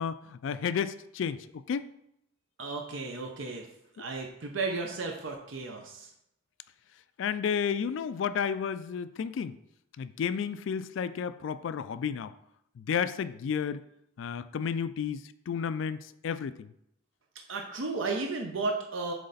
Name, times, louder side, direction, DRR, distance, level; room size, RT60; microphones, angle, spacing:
voice 1, 0.0-1.8 7.2-9.6 10.0-12.3 12.8-13.8 14.2-16.7, left 7 dB, 65° left, 14 dB, 0.3 m, -32 dB
voice 2, 2.6-3.7 4.0-6.1 17.5-19.1, right 3 dB, 70° right, 2 dB, 0.7 m, -34 dB
7.7 x 3.2 x 4.0 m, 0.78 s
head